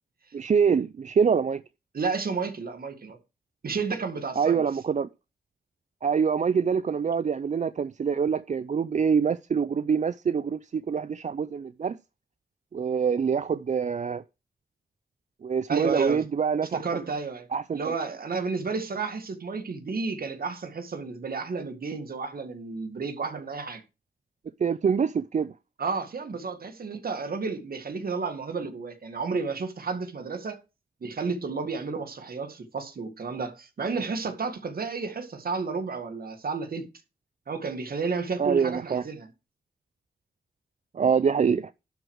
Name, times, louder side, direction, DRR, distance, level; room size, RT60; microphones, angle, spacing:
voice 1, 0.3-1.6 4.4-5.1 6.0-12.0 12.7-14.2 15.4-17.0 17.5-17.8 24.6-25.5 38.4-39.0 40.9-41.7, right 6 dB, 50° right, 0.4 m, -25 dB
voice 2, 1.9-3.2 3.6-4.6 15.7-16.2 16.7-17.5 17.7-23.8 25.8-30.6 31.0-36.9 37.5-39.3, right 4 dB, 65° right, 1.8 m, -31 dB
11.5 x 4.6 x 6.2 m
wide cardioid pair, 80°, 16 cm